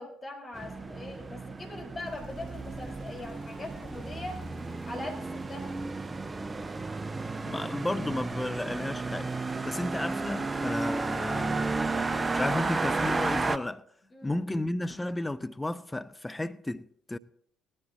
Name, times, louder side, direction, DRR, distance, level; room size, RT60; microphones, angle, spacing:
voice 1, 0.0-4.4 4.9-5.7 14.1-14.4, left 2 dB, 30° left, 4.5 m, -41 dB
sound 1, 0.5-13.6, right 3 dB, 25° right, 0.6 m, -33 dB
sound 2, 2.0-6.4, right 4 dB, 85° left, 5.3 m, -61 dB
voice 2, 7.4-9.4 9.7-11.8 12.3-13.8 14.2-17.2, left 1 dB, 15° left, 0.6 m, -33 dB
19.0 x 13.5 x 2.8 m
figure-of-eight pair, 50°, 0 cm